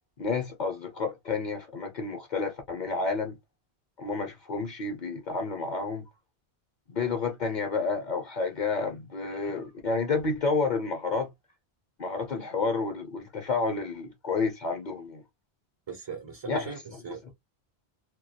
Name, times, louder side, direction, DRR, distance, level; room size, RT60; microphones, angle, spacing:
voice 1, 0.2-3.4 4.0-6.1 6.9-11.3 12.0-15.2 16.5-16.7, left 4 dB, 55° left, 0.6 m, -30 dB
voice 2, 15.9-17.3, right 5 dB, 40° right, 0.4 m, -39 dB
2.2 x 2.1 x 2.6 m
omnidirectional pair, 1.1 m